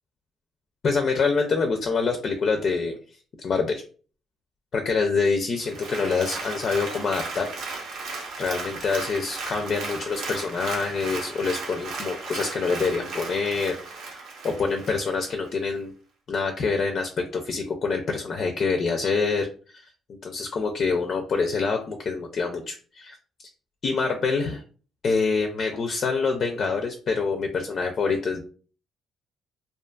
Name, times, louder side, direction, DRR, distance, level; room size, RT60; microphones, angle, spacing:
voice 1, 0.8-3.0 3.4-3.8 4.7-7.5 7.9-8.0 8.4-13.8 14.1-15.9 16.3-19.5 19.7-19.9 20.2-23.2 23.8-24.6 25.0-28.4, left 4 dB, 50° left, 4 dB, 0.4 m, -26 dB
Applause, 5.6-15.4 15.8-15.9, right 3 dB, 80° right, 0.7 m, -36 dB
2.4 x 2.4 x 2.3 m, 0.39 s
cardioid pair, 100°, 0 cm